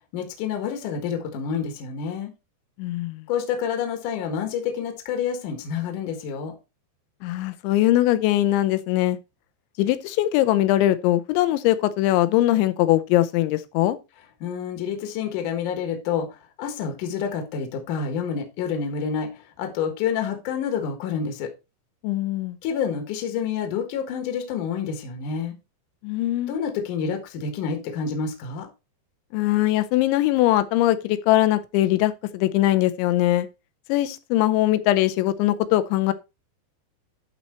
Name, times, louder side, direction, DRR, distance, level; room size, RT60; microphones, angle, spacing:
voice 1, 0.1-2.3 3.3-6.5 14.4-16.3 16.6-19.3 19.6-21.5 22.6-25.5 26.5-28.7, left 7 dB, 60° left, 2.4 m, -28 dB
voice 2, 2.8-3.2 7.2-9.2 9.8-14.0 22.0-22.6 26.0-26.5 29.3-33.5 33.9-36.1, left 15 dB, 80° left, 3.0 m, -21 dB
11.5 x 4.2 x 4.3 m
omnidirectional pair, 5.3 m